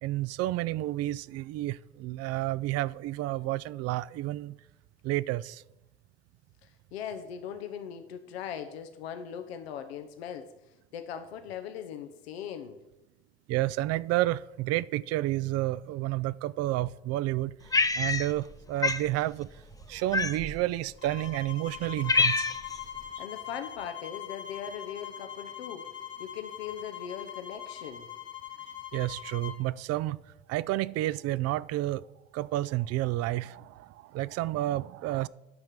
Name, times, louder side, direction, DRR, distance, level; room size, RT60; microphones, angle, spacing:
voice 1, 0.0-4.5 5.0-5.6 13.5-17.5 18.0-19.5 19.9-22.6 28.9-30.2 30.5-32.0 32.3-35.3, right 16 dB, 55° right, 0.5 m, -30 dB
voice 2, 6.6-12.8 23.2-25.9 26.2-28.1, left 8 dB, 85° left, 0.8 m, -40 dB
Cat, 17.7-18.5 18.8-19.1 20.1-20.6 21.3-21.4 21.8-22.8, left 3 dB, 10° left, 0.6 m, -26 dB
sound 1, 21.0-29.6, left 10 dB, 40° left, 1.4 m, -42 dB
9.6 x 5.8 x 6.7 m
hypercardioid pair, 70°, 30 cm